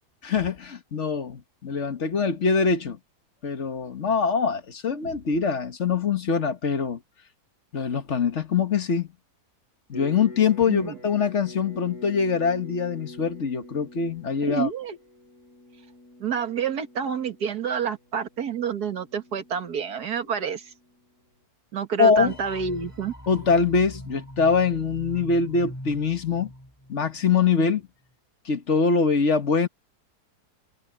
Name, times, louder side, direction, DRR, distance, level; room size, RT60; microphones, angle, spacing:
voice 1, 0.2-3.0 3.4-7.0 7.7-9.1 9.9-14.7 22.0-22.3 23.3-26.5 26.9-27.8 28.4-29.7, left 5 dB, 45° left, 1.6 m, -23 dB
sound 1, 9.9-21.0, left 1 dB, 70° left, 8.2 m, -46 dB
voice 2, 10.7-11.0 14.4-15.0 16.2-20.7 21.7-23.1, right 7 dB, 75° right, 2.2 m, -28 dB
sound 2, 22.2-27.3, equal, 10° left, 5.5 m, -42 dB
omnidirectional pair, 1.7 m